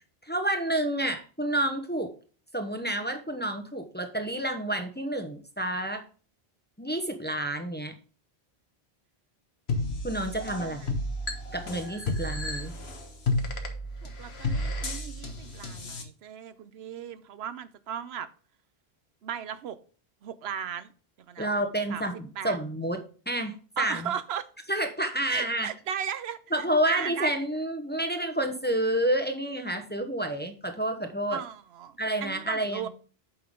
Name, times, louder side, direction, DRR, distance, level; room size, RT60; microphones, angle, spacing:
voice 1, 0.2-2.1 2.5-6.0 6.8-7.9 10.0-11.0 11.5-12.7 21.4-22.1 22.4-23.0 23.3-24.0 24.7-25.7 26.5-31.4 32.0-32.9, right 1 dB, 10° left, 0.9 m, -29 dB
sound 1, 9.7-16.0, left 2 dB, 80° left, 1.5 m, -32 dB
voice 2, 10.6-10.9 14.0-18.3 19.2-19.8 20.2-20.9 21.2-21.5 21.9-22.1 22.4-22.6 23.8-24.5 25.3-27.3 31.3-32.9, right 9 dB, 80° right, 0.9 m, -36 dB
8.5 x 5.7 x 3.7 m
omnidirectional pair, 1.0 m